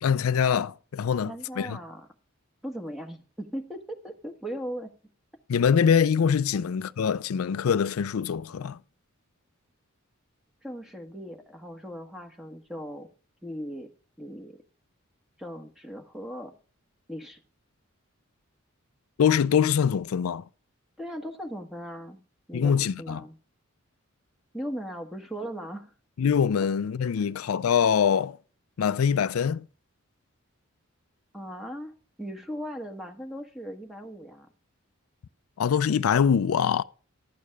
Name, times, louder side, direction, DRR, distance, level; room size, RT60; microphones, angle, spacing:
voice 1, 0.0-1.8 5.5-8.8 19.2-20.4 22.5-23.2 26.2-28.4 28.8-29.7 35.6-36.8, left 7 dB, 90° left, 0.4 m, -24 dB
voice 2, 1.1-2.1 2.6-4.9 10.6-13.1 13.4-13.9 14.2-14.6 15.4-16.5 17.1-17.4 21.0-22.2 22.5-23.4 24.5-25.9 27.2-27.3 31.3-31.9 32.2-34.5, equal, ahead, 1.3 m, -38 dB
12.0 x 8.3 x 3.4 m
head